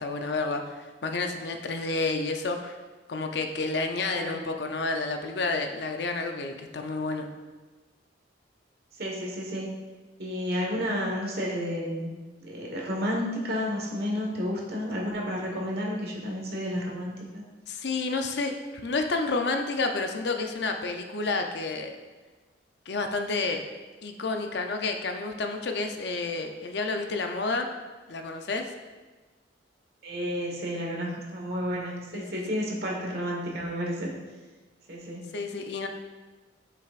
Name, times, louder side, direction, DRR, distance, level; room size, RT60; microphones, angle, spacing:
voice 1, 0.0-2.8 3.1-7.3 17.7-21.9 22.9-23.6 24.0-27.7 28.1-28.7 32.1-32.5 35.3-35.9, left 3 dB, 65° left, 5 dB, 0.6 m, -30 dB
voice 2, 8.9-9.8 10.2-12.1 12.4-17.4 30.0-34.1 34.9-35.3, equal, 60° right, -2 dB, 1.4 m, -31 dB
7.9 x 5.9 x 2.5 m, 1.3 s
head